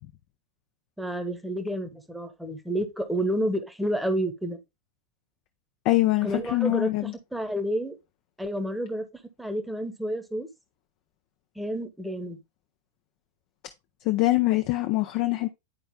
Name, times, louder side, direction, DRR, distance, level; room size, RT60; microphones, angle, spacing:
voice 1, 1.0-4.6 6.2-6.9 7.3-8.0 8.4-9.1 9.4-10.5 11.5-12.4, equal, ahead, 1.1 m, -29 dB
voice 2, 5.8-7.1 14.0-15.5, left 18 dB, 45° left, 0.5 m, -24 dB
11.0 x 4.3 x 2.2 m
figure-of-eight pair, 90°, 0 cm